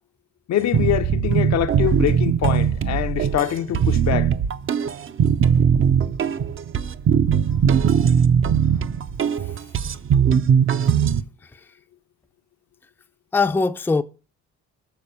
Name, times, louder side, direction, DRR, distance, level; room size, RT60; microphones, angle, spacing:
voice 1, 0.5-4.3, left 11 dB, 60° left, 0.6 m, -24 dB
sound 1, 0.7-11.2, right 7 dB, 45° right, 0.5 m, -20 dB
voice 2, 13.3-14.0, left 4 dB, 5° left, 0.4 m, -22 dB
7.2 x 4.1 x 6.5 m
cardioid pair, 90°, 30 cm